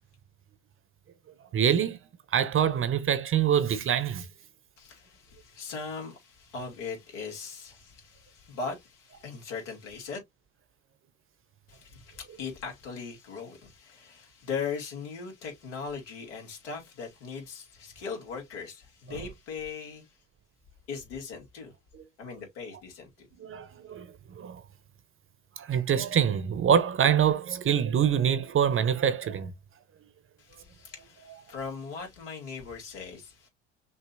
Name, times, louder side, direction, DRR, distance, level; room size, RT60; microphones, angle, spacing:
voice 1, 1.5-2.0 2.3-4.3 23.4-24.1 24.3-24.6 25.6-29.5, right 8 dB, 35° right, 0.9 m, -25 dB
voice 2, 4.8-10.2 11.7-20.2 20.9-21.7 22.2-23.3 30.4-33.5, left 5 dB, 75° left, 2.7 m, -39 dB
5.8 x 2.9 x 2.6 m
hypercardioid pair, 65°, 36 cm